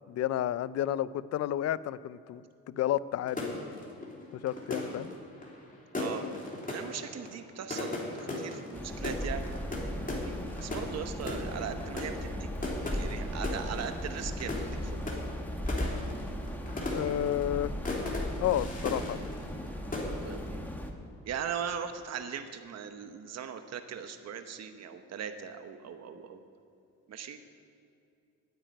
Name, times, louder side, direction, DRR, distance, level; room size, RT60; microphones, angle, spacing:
voice 1, 0.1-2.4 2.7-3.6 4.3-5.1 16.9-17.7 18.4-19.2, left 12 dB, 55° left, 18 dB, 0.5 m, -31 dB
sound 1, 3.3-19.7 19.9-20.5, left 2 dB, 25° left, 3.0 m, -38 dB
voice 2, 5.9-6.2 6.7-9.5 10.1-10.3 10.6-12.5 12.9-15.0 20.2-20.6 21.2-26.4 27.1-27.4, right 8 dB, 60° right, 8 dB, 1.0 m, -39 dB
sound 2, 8.7-20.9, equal, 5° left, 1.5 m, -37 dB
9.5 x 9.0 x 9.0 m, 2.6 s
cardioid pair, 90°, 30 cm